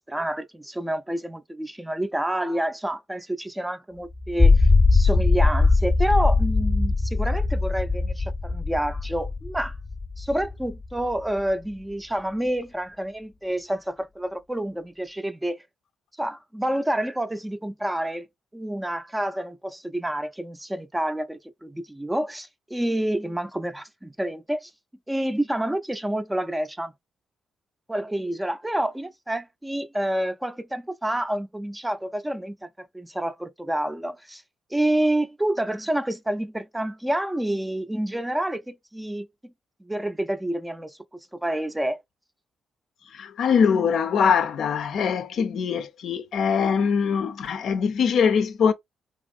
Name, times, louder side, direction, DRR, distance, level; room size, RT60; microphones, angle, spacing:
voice 1, 0.1-4.6 4.9-9.7 10.2-15.6 16.2-18.3 18.5-24.7 25.1-26.9 27.9-32.7 32.9-34.4 34.7-39.3 39.9-40.9 41.4-42.0, right 1 dB, 10° right, 0.4 m, -28 dB
sound 1, 4.2-10.7, left 3 dB, 25° left, 0.7 m, -20 dB
voice 2, 43.1-48.7, left 6 dB, 70° left, 0.4 m, -22 dB
2.7 x 2.4 x 2.5 m
supercardioid pair, 65°, 0 cm